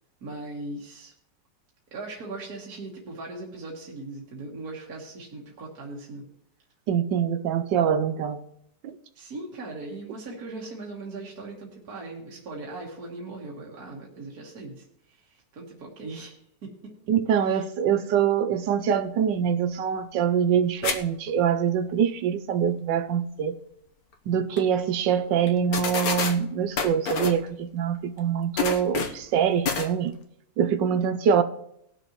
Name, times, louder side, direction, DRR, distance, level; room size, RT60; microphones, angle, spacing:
voice 1, 0.2-1.1 1.9-6.3 9.2-16.7 17.3-17.6, right 2 dB, 60° right, 2.0 m, -39 dB
voice 2, 6.9-8.4 8.8-9.0 17.1-23.6 24.3-30.1 30.6-31.4, right 8 dB, 85° right, 1.4 m, -24 dB
sound 1, 20.8-21.0 21.3-21.4 24.1-24.2 24.6-24.7 25.5-25.6 25.7-26.3 26.8-27.4 28.6-29.2 29.6-29.9, left 5 dB, 60° left, 1.4 m, -27 dB
19.5 x 6.6 x 3.1 m
omnidirectional pair, 1.9 m